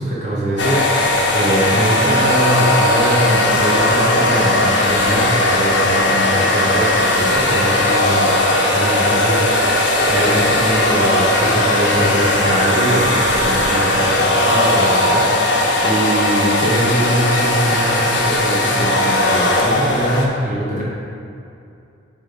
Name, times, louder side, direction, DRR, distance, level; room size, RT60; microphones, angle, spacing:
voice 1, 0.0-20.8, right 1 dB, 35° right, -7 dB, 1.0 m, -22 dB
sound 1, 0.6-20.3, left 1 dB, 65° left, 0.8 m, -17 dB
7.2 x 3.8 x 4.9 m, 2.5 s
head